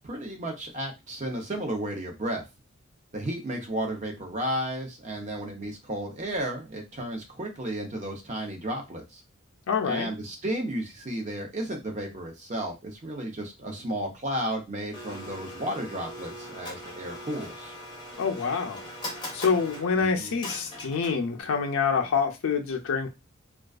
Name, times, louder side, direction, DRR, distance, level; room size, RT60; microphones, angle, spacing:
voice 1, 0.0-2.4 3.1-9.2 9.8-17.7 20.0-20.3, right 1 dB, 35° right, 0.6 m, -33 dB
voice 2, 9.7-10.1 18.2-18.8 19.3-23.1, left 5 dB, 80° left, 0.4 m, -26 dB
Domestic sounds home sounds, 14.9-21.4, left 1 dB, 20° left, 0.5 m, -41 dB
2.3 x 2.3 x 2.3 m
head